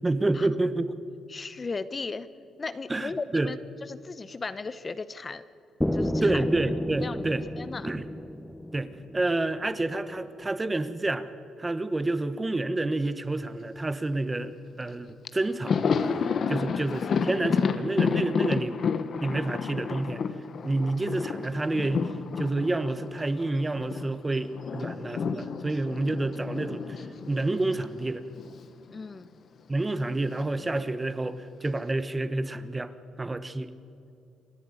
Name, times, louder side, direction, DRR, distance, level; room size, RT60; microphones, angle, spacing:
voice 1, 0.0-0.9 2.9-3.5 6.2-7.4 7.8-8.1 8.7-11.3 11.6-16.1 16.5-18.8 19.2-20.2 20.6-22.1 22.4-28.3 29.7-33.7, right 2 dB, 20° right, 12 dB, 1.1 m, -29 dB
voice 2, 1.3-2.3 2.6-3.6 3.8-5.4 5.9-6.4 7.0-7.2 7.6-7.9 16.4-16.7 28.9-29.3, left 4 dB, 30° left, 14 dB, 0.8 m, -36 dB
sound 1, 5.8-9.7, equal, 5° left, 1.1 m, -31 dB
Thunder, 14.9-15.0 15.2-24.1 24.3-28.6 28.9-29.1 30.2-30.9, left 6 dB, 55° left, 1.1 m, -30 dB
28.0 x 10.5 x 9.7 m, 2.6 s
cardioid pair, 90°, 0 cm